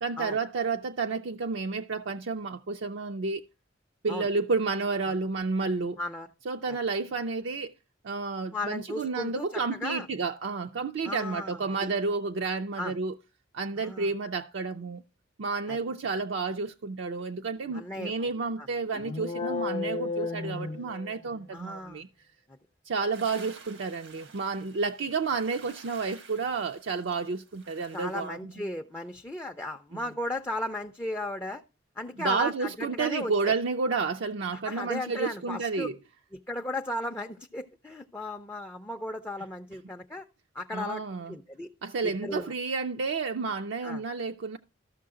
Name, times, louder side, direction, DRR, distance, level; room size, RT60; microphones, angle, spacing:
voice 1, 0.0-3.4 4.0-6.0 6.5-7.7 8.0-13.2 13.5-15.0 15.4-22.1 22.9-28.7 32.2-36.0 40.7-41.4 41.8-44.6, right 4 dB, 65° right, 0.5 m, -31 dB
voice 2, 6.0-6.3 8.5-10.1 11.0-11.9 12.8-12.9 13.8-14.1 15.7-15.8 17.7-18.1 18.6-18.7 21.5-22.0 27.9-31.6 32.0-33.5 34.5-35.9 36.3-40.3 40.5-41.0 41.3-41.7 42.0-42.5 43.8-44.0, left 1 dB, 10° left, 0.4 m, -35 dB
sound 1, 18.9-21.5, left 4 dB, 40° left, 0.8 m, -33 dB
sound 2, 23.1-28.3, right 4 dB, 90° right, 1.4 m, -51 dB
13.0 x 6.2 x 3.7 m
head